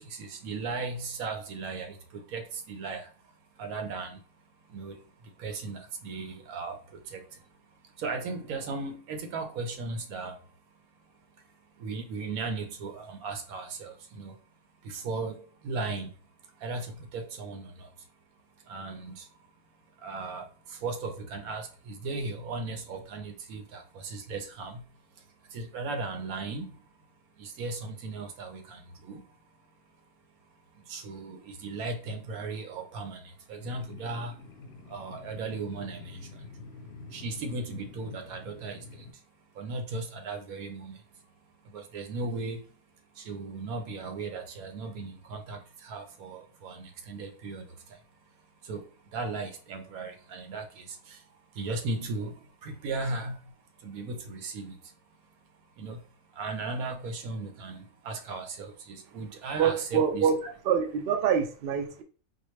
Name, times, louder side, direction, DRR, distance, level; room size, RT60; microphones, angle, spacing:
voice 1, 0.0-2.0 2.3-3.1 3.6-4.2 4.7-5.0 5.4-6.8 7.1-7.2 8.0-10.3 11.8-14.3 14.8-16.1 16.6-17.7 18.7-19.2 20.0-20.5 20.8-24.8 25.5-26.7 27.4-28.8 29.0-29.2 30.9-33.2 33.5-34.3 34.9-36.2 37.1-38.8 39.6-41.0 41.7-42.6 43.3-47.6 48.7-48.8 49.1-50.6 51.6-52.3 52.6-53.4 53.8-54.7 55.8-56.0 56.4-60.5, right 3 dB, 80° right, 1.2 m, -36 dB
sound 1, 33.6-39.1, left 3 dB, 60° left, 0.8 m, -47 dB
voice 2, 59.6-62.0, right 7 dB, 65° right, 0.6 m, -26 dB
4.2 x 2.3 x 3.1 m
omnidirectional pair, 1.5 m